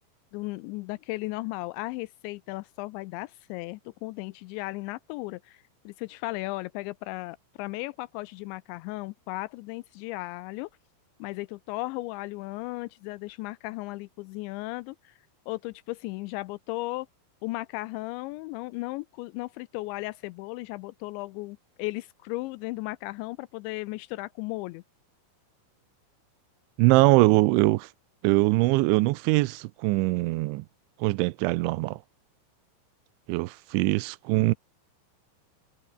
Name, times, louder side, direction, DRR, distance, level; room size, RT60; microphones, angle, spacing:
voice 1, 0.3-10.7 11.2-15.2 15.5-17.1 17.4-24.8, left 21 dB, 90° left, 2.6 m, -36 dB
voice 2, 26.8-27.9 28.2-30.7 31.0-32.0 33.3-34.5, right 22 dB, 80° right, 2.9 m, -22 dB
omnidirectional pair, 5.8 m